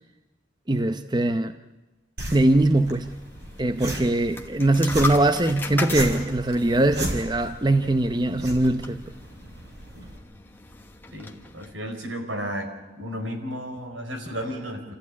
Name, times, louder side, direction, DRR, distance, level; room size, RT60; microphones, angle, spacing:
voice 1, 0.7-1.6 2.3-3.1 3.6-9.0, right 2 dB, 20° right, 0.7 m, -21 dB
sound 1, 2.2-10.2, right 1 dB, 60° right, 4.8 m, -36 dB
sound 2, 2.8-11.7, left 3 dB, 10° left, 1.2 m, -38 dB
voice 2, 11.1-12.7 13.0-14.8, equal, 85° right, 4.7 m, -33 dB
28.0 x 14.5 x 9.7 m
head